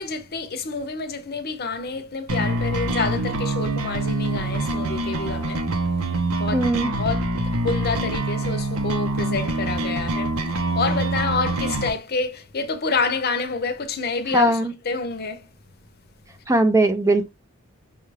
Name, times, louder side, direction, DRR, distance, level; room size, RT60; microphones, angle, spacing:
voice 1, 0.0-5.7 6.4-6.7 7.0-7.4 7.6-15.5, left 4 dB, 50° left, 0.7 m, -28 dB
sound 1, 2.3-11.9, right 2 dB, 85° right, 0.8 m, -25 dB
voice 2, 6.5-6.9 14.3-14.7 16.5-17.3, right 1 dB, 15° right, 0.4 m, -19 dB
5.4 x 2.4 x 3.2 m
head